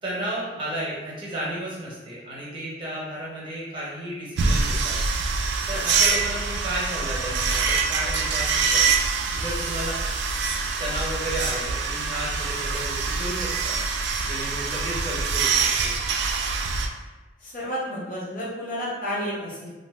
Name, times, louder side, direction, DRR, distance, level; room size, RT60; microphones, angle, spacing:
voice 1, 0.0-5.0 5.7-8.9 9.3-10.0 10.8-13.8 14.2-16.0, right 1 dB, 25° right, -6 dB, 0.9 m, -33 dB
sound 1, 4.4-16.9, right 4 dB, 65° right, 0.3 m, -25 dB
voice 2, 17.4-19.7, equal, 50° left, -6 dB, 0.9 m, -31 dB
2.6 x 2.0 x 3.4 m, 1.2 s
head